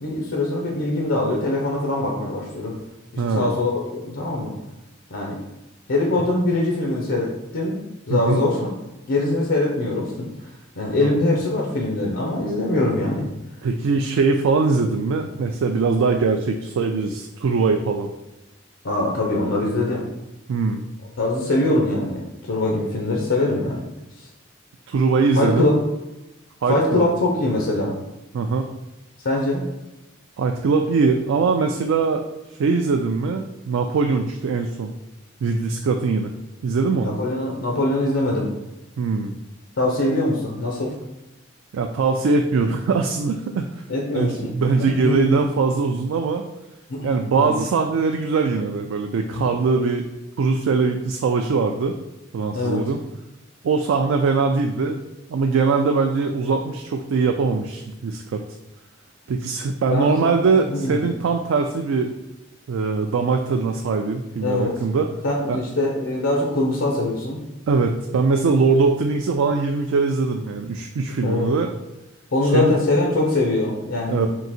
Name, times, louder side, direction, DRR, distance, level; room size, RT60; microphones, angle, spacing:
voice 1, 0.0-2.8 3.1-4.5 5.1-5.4 5.9-8.7 9.1-10.3 10.8-13.3 18.8-20.1 21.2-23.8 24.2-24.3 25.4-25.8 26.7-28.0 29.2-29.7 37.0-38.5 39.8-41.0 43.9-44.5 44.8-45.3 46.9-47.6 49.3-49.5 52.5-52.8 59.9-60.3 60.7-61.0 64.4-64.7 65.2-67.4 71.2-71.5 72.3-74.2, left 2 dB, 80° left, -1 dB, 0.7 m, -23 dB
voice 2, 3.2-3.5 8.1-8.4 11.0-11.1 13.6-18.1 20.5-20.8 24.9-25.7 26.6-27.1 28.3-28.7 30.4-32.2 32.6-34.9 35.4-36.3 36.6-37.2 39.0-39.3 41.7-43.7 44.1-46.4 47.0-50.1 50.4-52.0 52.3-53.0 53.6-55.0 55.3-58.4 59.3-62.1 62.7-65.1 65.5-65.6 67.7-71.7 72.5-72.8 74.1-74.3, right 4 dB, 85° right, 4 dB, 0.3 m, -21 dB
3.8 x 2.7 x 4.2 m, 1.0 s
head